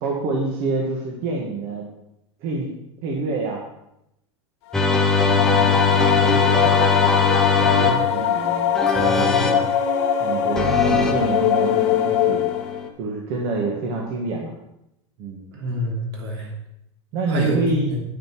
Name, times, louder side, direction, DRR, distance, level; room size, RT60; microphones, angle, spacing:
voice 1, 0.0-1.8 2.4-2.7 3.0-3.6 5.2-7.2 7.6-8.7 9.1-9.3 10.2-12.4 13.0-14.5 15.2-15.5 17.1-18.0, right 3 dB, 40° right, -1 dB, 1.6 m, -27 dB
sound 1, 4.7-12.9, left 9 dB, 55° left, 1.3 m, -22 dB
sound 2, 4.7-8.4 8.8-9.7 10.6-12.9, left 4 dB, 5° left, 0.8 m, -21 dB
voice 2, 8.9-9.6 15.5-16.5 17.3-18.0, right 1 dB, 60° right, 0 dB, 3.0 m, -27 dB
9.4 x 9.2 x 4.6 m, 0.82 s
supercardioid pair, 165°, 16 cm